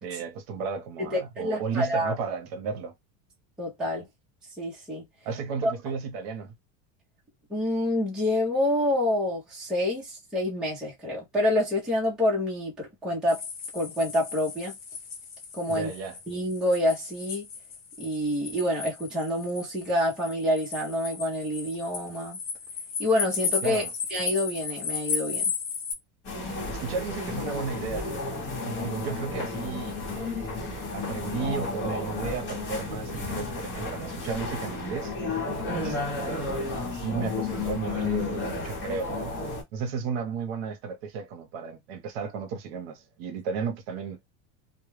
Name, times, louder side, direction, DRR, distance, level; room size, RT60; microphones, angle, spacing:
voice 1, 0.0-2.9 5.2-6.5 15.7-16.2 23.6-23.9 26.7-28.1 28.6-35.1 35.7-39.4 39.7-44.2, right 5 dB, 60° right, 0.8 m, -34 dB
voice 2, 1.0-2.1 3.6-4.1 4.6-5.0 7.5-13.4 13.7-14.7 15.6-15.9 16.3-17.5 18.0-22.4 23.0-23.8 24.1-25.5 35.7-36.0, left 1 dB, ahead, 0.6 m, -27 dB
sound 1, 13.3-25.9, left 6 dB, 65° left, 0.9 m, -35 dB
sound 2, 26.2-39.6, left 3 dB, 35° left, 0.9 m, -32 dB
2.2 x 2.1 x 3.0 m
cardioid pair, 175°, 35 cm